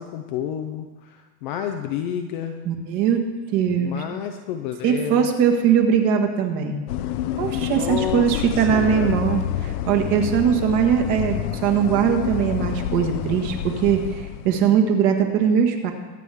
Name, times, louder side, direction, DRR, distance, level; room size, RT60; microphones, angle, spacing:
voice 1, 0.0-2.6 3.6-5.3 7.5-9.2, left 9 dB, 30° left, 5 dB, 0.5 m, -30 dB
voice 2, 2.6-3.2 3.5-4.0 4.8-6.8 7.4-15.9, right 8 dB, 35° right, 4 dB, 1.6 m, -21 dB
sound 1, 6.9-14.7, left 11 dB, 65° left, 0.7 m, -28 dB
22.5 x 8.2 x 3.5 m, 1.3 s
supercardioid pair, 160°, 49 cm